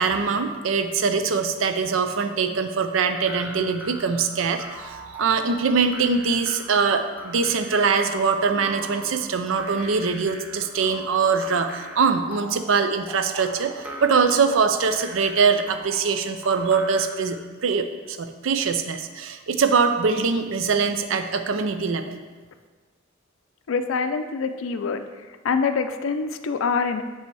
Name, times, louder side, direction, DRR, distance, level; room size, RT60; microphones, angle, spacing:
voice 1, 0.0-22.2, right 5 dB, 75° right, 8 dB, 0.5 m, -23 dB
sound 1, 3.1-17.3, right 1 dB, 10° right, 0.7 m, -40 dB
voice 2, 23.7-25.0 25.4-27.0, left 5 dB, 75° left, 9 dB, 0.4 m, -25 dB
6.7 x 3.4 x 4.7 m, 1.4 s
head